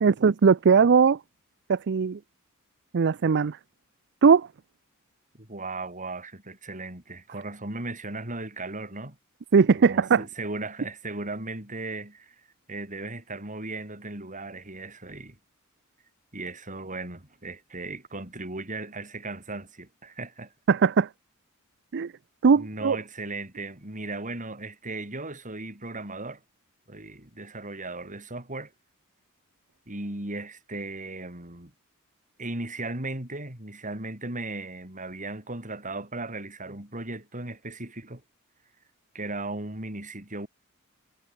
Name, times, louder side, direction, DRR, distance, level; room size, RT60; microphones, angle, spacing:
voice 1, 0.0-1.2 1.7-2.2 2.9-3.6 4.2-4.5 9.5-10.2 20.7-21.1 21.9-22.1 22.4-23.0, right 5 dB, 55° right, 0.5 m, -19 dB
voice 2, 5.3-9.2 9.7-15.4 16.3-20.5 22.6-26.4 26.9-28.7 29.9-31.7 32.4-38.2 39.1-40.5, right 2 dB, 35° right, 6.7 m, -37 dB
head